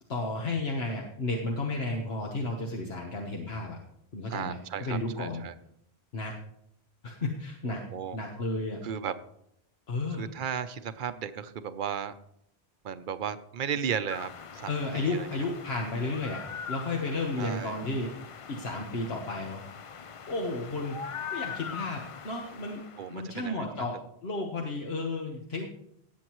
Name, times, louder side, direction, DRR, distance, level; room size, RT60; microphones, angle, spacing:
voice 1, 0.1-3.8 4.1-5.4 6.1-6.3 7.0-7.8 8.1-8.8 9.9-10.3 14.7-16.4 16.7-18.1 18.5-19.6 20.3-21.0 21.3-22.8 23.1-25.7, left 2 dB, 75° left, 0 dB, 1.5 m, -33 dB
voice 2, 4.3-5.5 7.6-8.2 8.8-9.2 10.1-12.1 12.8-15.3 17.4-17.8 23.0-23.9, right 8 dB, 55° right, 11 dB, 0.8 m, -35 dB
sound 1, 14.1-23.2, left 7 dB, 45° left, 0.4 m, -42 dB
18.5 x 7.5 x 3.1 m, 0.75 s
omnidirectional pair, 1.1 m